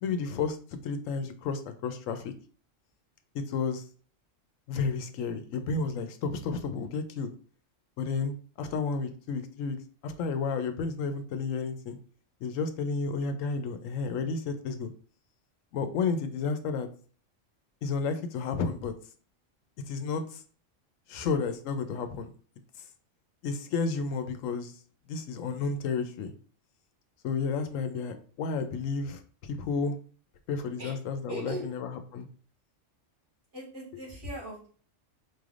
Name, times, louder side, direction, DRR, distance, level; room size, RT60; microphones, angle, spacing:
voice 1, 0.0-2.3 3.3-3.8 4.7-7.3 8.0-12.0 12.4-14.9 15.7-16.9 17.8-18.9 19.9-20.4 21.1-22.3 23.4-24.7 25.1-26.3 27.2-30.0 30.5-32.3, left 4 dB, 85° left, 9 dB, 1.0 m, -32 dB
voice 2, 27.7-28.2 30.8-31.0 31.3-31.7 33.5-34.7, right 1 dB, 70° right, -4 dB, 2.4 m, -40 dB
4.5 x 3.3 x 2.4 m, 0.42 s
omnidirectional pair, 1.3 m